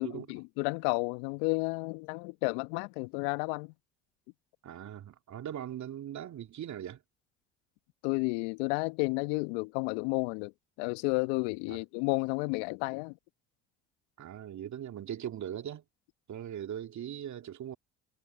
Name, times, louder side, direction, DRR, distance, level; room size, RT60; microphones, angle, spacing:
voice 1, 0.0-3.7 8.0-10.5 10.8-13.2, left 28 dB, 70° left, 1.5 m, -32 dB
voice 2, 4.6-7.0 11.7-11.8 14.2-15.8 16.3-17.8, right 10 dB, 50° right, 2.7 m, -40 dB
hypercardioid pair, 60°, 37 cm